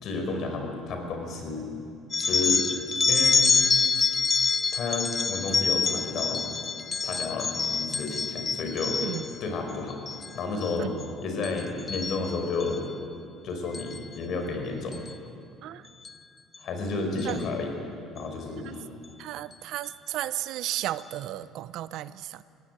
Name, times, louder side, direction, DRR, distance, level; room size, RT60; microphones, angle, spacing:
voice 1, 0.0-1.7 2.2-2.6 3.1-3.5 4.7-6.5 7.0-9.0 9.4-10.9 11.2-12.8 13.4-15.0 16.6-17.7 18.1-18.9, left 3 dB, 55° left, 4 dB, 5.0 m, -31 dB
sound 1, 2.1-9.4 9.9-10.3 10.6-11.0 11.4-12.8 13.7-14.0 14.9-15.1 16.1-16.2 16.5-16.6 17.2-17.4, left 5 dB, 30° left, 0.7 m, -26 dB
voice 2, 19.2-22.4, right 13 dB, 70° right, 15 dB, 0.7 m, -34 dB
19.0 x 17.0 x 9.4 m, 2.4 s
supercardioid pair, 95°, 0 cm